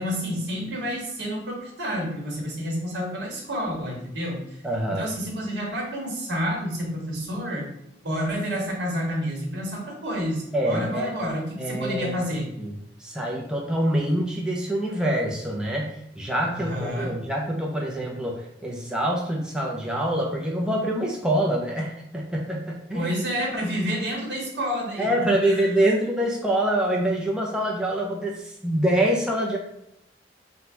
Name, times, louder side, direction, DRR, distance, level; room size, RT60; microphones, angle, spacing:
voice 1, 0.0-4.4 4.9-7.7 8.0-12.4 16.5-17.2 22.9-25.7, equal, 70° right, -2 dB, 1.5 m, -29 dB
voice 2, 4.6-5.1 10.5-11.1 11.6-12.2 12.6-12.7 13.0-23.2 25.0-29.6, right 1 dB, 5° right, -2 dB, 0.5 m, -25 dB
4.2 x 2.2 x 4.4 m, 0.81 s
head